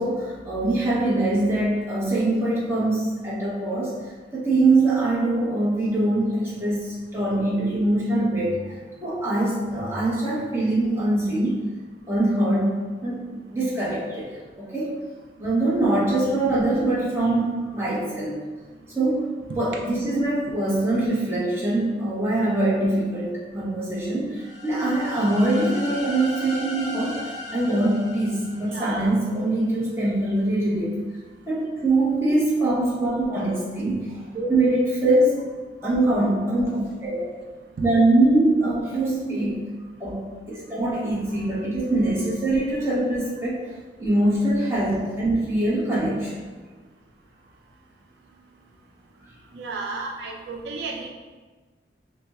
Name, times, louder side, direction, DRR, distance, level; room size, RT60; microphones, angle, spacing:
voice 1, 0.0-11.6 12.1-13.2 13.5-15.0 15.4-18.4 18.9-19.3 19.6-30.9 31.5-35.4 35.8-37.3 37.8-39.6 40.0-43.6 44.0-46.5, right 2 dB, 15° right, -7 dB, 0.8 m, -23 dB
sound 1, 24.4-29.2, left 1 dB, 20° left, 1.0 m, -37 dB
voice 2, 28.7-29.1 49.5-51.1, right 3 dB, 75° right, 0 dB, 0.4 m, -33 dB
5.6 x 2.1 x 2.3 m, 1.4 s
head